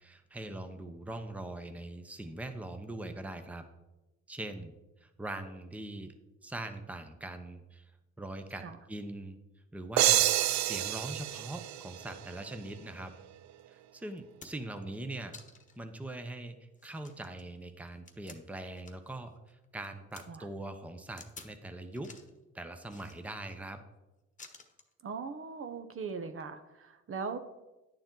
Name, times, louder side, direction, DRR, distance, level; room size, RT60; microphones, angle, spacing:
voice 1, 0.0-3.7 4.3-4.7 5.0-6.1 6.4-7.9 8.2-9.4 9.7-10.2 10.6-13.1 13.7-15.3 15.8-22.2 22.5-23.8, right 2 dB, 5° right, 8 dB, 0.8 m, -42 dB
sound 1, 10.0-12.6, right 14 dB, 70° right, 0.4 m, -28 dB
sound 2, 13.6-13.7 14.1-14.8 15.3-15.8 16.2-16.3 16.8-19.2 19.5-20.2 21.2-21.6 21.9-22.4 22.9-23.6 24.4-24.9 26.0-26.2, left 4 dB, 25° left, 1.2 m, -53 dB
voice 2, 25.0-27.4, right 5 dB, 45° right, 8 dB, 0.8 m, -39 dB
10.5 x 6.8 x 3.9 m, 1.0 s
cardioid pair, 90°, 30 cm